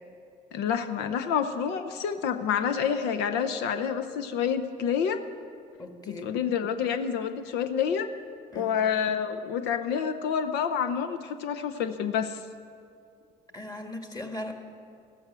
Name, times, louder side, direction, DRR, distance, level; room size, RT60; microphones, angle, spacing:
voice 1, 0.5-5.2 6.1-8.1 8.5-12.4, left 7 dB, 90° left, 8 dB, 0.7 m, -28 dB
voice 2, 5.8-6.3 8.5-8.7 13.5-14.5, left 1 dB, 25° left, 4 dB, 1.6 m, -38 dB
14.0 x 13.0 x 6.2 m, 2.4 s
cardioid pair, 110°, 17 cm